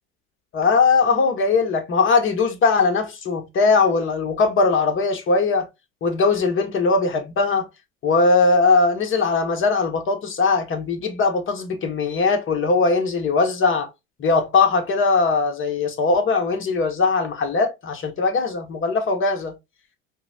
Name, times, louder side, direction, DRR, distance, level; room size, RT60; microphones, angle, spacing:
voice 1, 0.5-5.6 6.0-7.7 8.0-13.9 14.2-19.5, left 4 dB, 30° left, 0.9 m, -20 dB
5.4 x 2.0 x 2.6 m
figure-of-eight pair, 65°, 40 cm